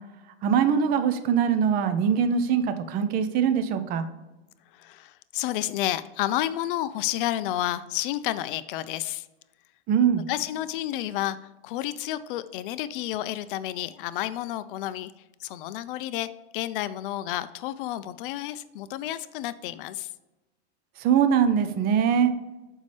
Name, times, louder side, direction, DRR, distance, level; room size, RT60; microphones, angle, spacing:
voice 1, 0.4-4.1 9.9-10.2 21.0-22.3, right 7 dB, 30° right, 10 dB, 0.5 m, -22 dB
voice 2, 4.7-9.3 10.3-11.4 11.6-15.1 15.4-20.1, left 13 dB, 55° left, 14 dB, 0.4 m, -30 dB
6.8 x 5.3 x 3.3 m, 1.1 s
supercardioid pair, 140°, 32 cm